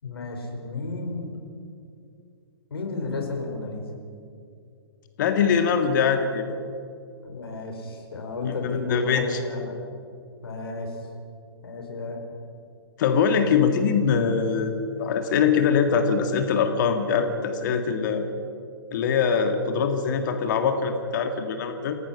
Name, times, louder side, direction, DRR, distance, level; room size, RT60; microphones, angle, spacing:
voice 1, 0.0-1.4 2.7-3.9 7.2-9.7 10.4-11.0 11.6-12.2, left 3 dB, 65° left, 3 dB, 4.9 m, -32 dB
voice 2, 5.2-6.6 8.6-9.4 13.0-18.3 18.9-22.0, left 6 dB, 45° left, 6 dB, 2.0 m, -23 dB
28.0 x 17.5 x 5.8 m, 2.4 s
figure-of-eight pair, 120°, 14 cm